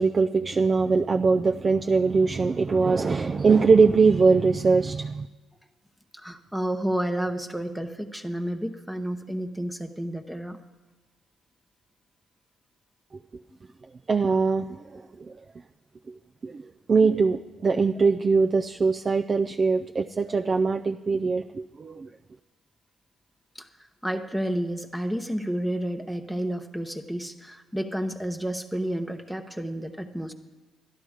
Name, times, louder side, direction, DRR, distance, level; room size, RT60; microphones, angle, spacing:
voice 1, 0.0-5.3 14.1-15.0 16.4-16.6 16.9-22.1, right 4 dB, 40° right, 5 dB, 0.4 m, -22 dB
voice 2, 6.1-10.6 23.5-23.7 24.0-30.3, right 1 dB, ahead, 6 dB, 0.8 m, -30 dB
12.0 x 11.5 x 4.9 m, 1.2 s
cardioid pair, 80°, 0 cm